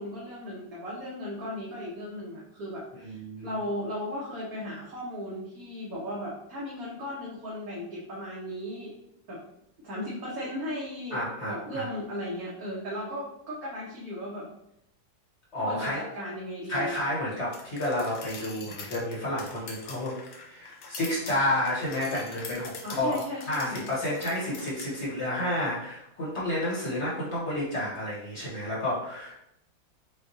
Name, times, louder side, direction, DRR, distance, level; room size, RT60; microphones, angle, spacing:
voice 1, 0.0-8.9 9.3-9.4 9.8-14.5 15.6-17.0 22.8-23.9, left 1 dB, 55° right, -6 dB, 1.2 m, -36 dB
voice 2, 3.0-3.6 11.1-11.9 15.5-16.0 16.7-20.2 20.4-23.2 23.5-29.3, left 1 dB, 40° left, -6 dB, 1.2 m, -30 dB
sound 1, 17.5-24.9, left 4 dB, 70° left, 1.2 m, -44 dB
5.8 x 2.3 x 2.7 m, 0.77 s
omnidirectional pair, 2.1 m